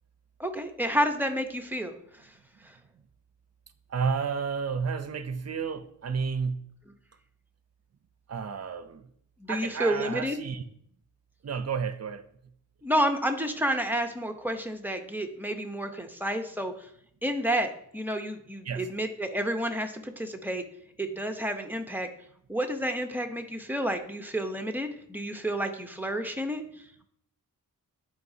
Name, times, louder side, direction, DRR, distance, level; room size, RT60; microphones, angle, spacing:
voice 1, 0.4-1.9 9.4-10.4 12.8-16.7 17.2-20.6 21.0-22.1 22.5-26.6, equal, 5° right, 0.8 m, -30 dB
voice 2, 3.9-6.6 8.3-9.1 9.5-10.6 11.4-12.2 18.6-18.9, right 6 dB, 45° right, 0.6 m, -31 dB
11.0 x 5.0 x 2.7 m
wide cardioid pair, 90°, 35 cm